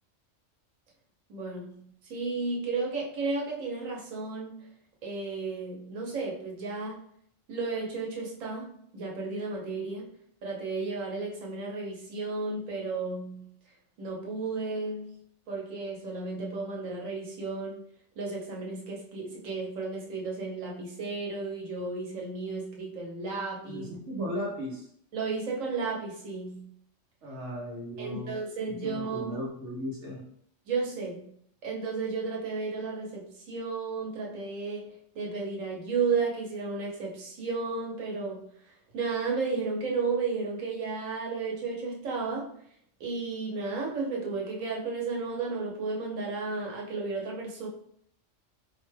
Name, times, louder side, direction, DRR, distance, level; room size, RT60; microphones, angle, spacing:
voice 1, 1.3-4.6 5.0-7.0 7.5-8.7 8.9-10.1 10.4-13.5 14.0-15.2 15.5-17.8 18.2-23.9 25.1-26.7 28.0-29.4 30.7-31.3 31.6-38.5 38.9-42.5 43.0-47.7, right 4 dB, 85° right, -2 dB, 1.3 m, -33 dB
voice 2, 23.7-24.9 27.2-28.4 28.6-30.2, equal, 70° right, -3 dB, 1.0 m, -36 dB
4.2 x 2.2 x 3.2 m, 0.68 s
omnidirectional pair, 1.3 m